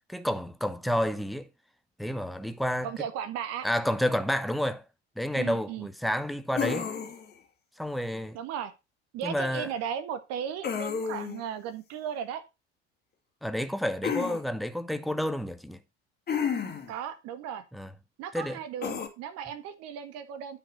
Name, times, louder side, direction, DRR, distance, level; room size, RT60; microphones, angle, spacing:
voice 1, 0.1-1.5 2.0-2.9 3.6-4.8 5.2-6.9 7.8-8.4 9.2-9.7 13.4-15.8 17.7-17.9 18.3-18.6, equal, ahead, 0.9 m, -30 dB
voice 2, 2.8-3.7 5.3-5.9 8.3-8.7 9.1-12.4 16.9-17.6 18.2-20.6, right 8 dB, 50° right, 1.6 m, -36 dB
sound 1, 6.6-7.3 10.6-11.4 14.0-14.4 16.3-16.9 18.8-19.1, left 7 dB, 30° left, 2.2 m, -31 dB
9.8 x 5.5 x 5.3 m
figure-of-eight pair, 70°, 32 cm